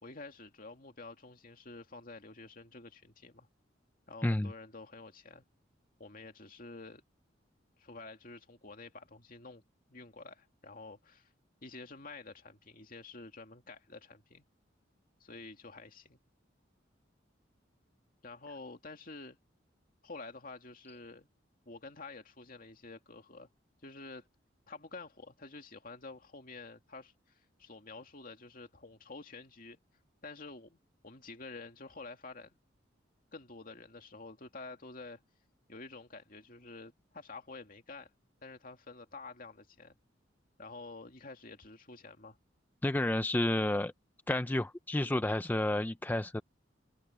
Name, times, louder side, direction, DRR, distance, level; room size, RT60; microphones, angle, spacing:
voice 1, 0.0-3.5 4.1-5.4 6.0-7.0 7.8-9.6 9.9-11.3 11.6-14.4 15.2-16.2 18.2-19.4 20.0-21.3 21.7-23.5 23.8-24.3 24.7-29.8 30.2-32.5 33.3-35.2 35.7-38.1 38.4-40.0 40.6-42.4, left 3 dB, 50° left, 2.5 m, -49 dB
voice 2, 42.8-43.9 44.3-46.4, left 1 dB, 10° left, 0.4 m, -30 dB
head